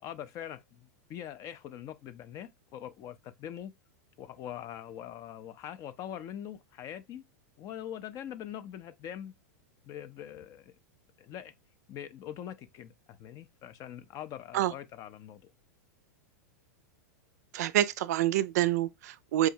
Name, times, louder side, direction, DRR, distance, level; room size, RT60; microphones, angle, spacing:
voice 1, 0.0-3.7 4.2-7.2 7.6-9.3 9.8-10.7 11.2-11.5 11.9-15.5, left 10 dB, 35° left, 0.4 m, -43 dB
voice 2, 17.5-19.5, right 13 dB, 70° right, 0.4 m, -27 dB
4.7 x 2.1 x 2.7 m
hypercardioid pair, 115°, 9 cm